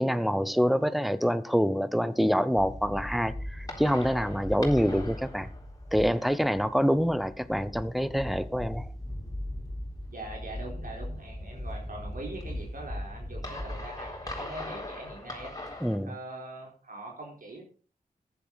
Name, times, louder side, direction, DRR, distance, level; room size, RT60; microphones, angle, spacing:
voice 1, 0.0-5.5 5.9-8.9 15.8-16.1, equal, ahead, 0.9 m, -26 dB
sound 1, 2.6-16.0, left 1 dB, 25° left, 3.9 m, -39 dB
voice 2, 10.1-15.7 16.0-17.6, right 2 dB, 65° right, 4.2 m, -42 dB
14.5 x 10.5 x 4.1 m
wide cardioid pair, 100°, 15 cm